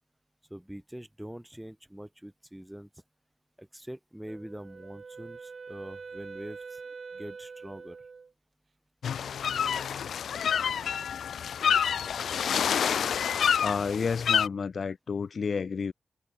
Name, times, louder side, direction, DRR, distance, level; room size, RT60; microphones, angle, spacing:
voice 1, 0.5-2.9 3.6-6.8 7.1-8.0, right 1 dB, 5° right, 3.9 m, -44 dB
Wind instrument woodwind instrument, 4.3-8.3, right 5 dB, 55° right, 2.2 m, -44 dB
sound 1, 9.0-14.5, left 8 dB, 85° left, 0.4 m, -28 dB
voice 2, 13.6-15.9, left 5 dB, 60° left, 0.9 m, -31 dB
cardioid pair, 65°, 0 cm